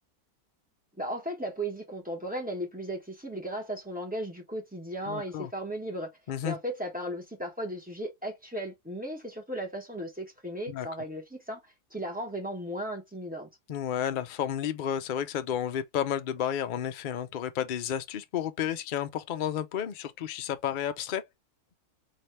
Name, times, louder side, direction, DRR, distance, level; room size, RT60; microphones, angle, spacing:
voice 1, 1.0-6.1 6.4-11.6 11.9-13.5, right 1 dB, 5° right, 1.2 m, -36 dB
voice 2, 5.1-5.5 6.3-6.6 10.7-10.9 13.7-21.2, left 9 dB, 75° left, 0.4 m, -31 dB
4.2 x 2.9 x 3.2 m
omnidirectional pair, 1.6 m